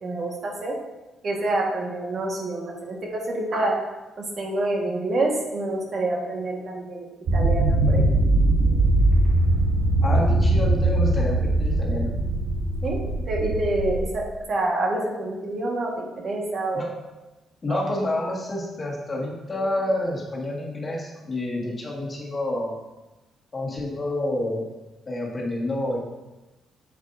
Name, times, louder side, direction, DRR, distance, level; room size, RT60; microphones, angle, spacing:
voice 1, 0.0-0.8 1.2-3.8 4.2-7.0 7.3-8.2 12.8-13.0 13.3-16.9 17.7-17.8, right 2 dB, 50° right, -1 dB, 1.5 m, -27 dB
sound 1, 7.3-14.0, right 2 dB, 70° right, 1.0 m, -21 dB
voice 2, 10.0-12.1 16.7-16.9 17.6-22.7 23.5-24.6 25.0-26.0, left 1 dB, 30° left, -2 dB, 1.8 m, -28 dB
8.1 x 7.2 x 2.7 m, 1.1 s
cardioid pair, 90°, 0 cm